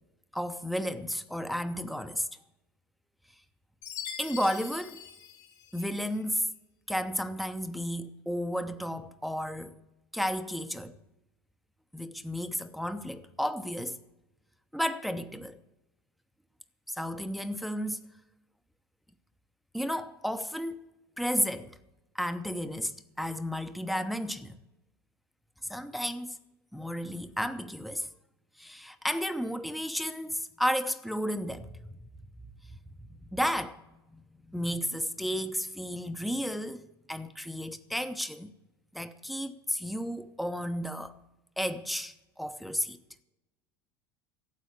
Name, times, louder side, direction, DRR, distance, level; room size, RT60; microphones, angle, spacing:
voice 1, 0.3-2.3 4.2-5.0 5.7-6.4 6.9-9.8 10.1-11.0 11.9-14.0 14.7-15.6 16.9-18.0 19.7-20.8 21.2-21.8 22.1-24.6 25.7-26.4 26.7-28.1 28.6-31.9 33.3-33.8 34.1-38.5 38.9-41.1 41.6-43.0, equal, ahead, 0.8 m, -33 dB
Chime, 3.8-6.1, left 8 dB, 65° left, 3.6 m, -43 dB
12.5 x 8.2 x 8.2 m
hypercardioid pair, 75°, 13 cm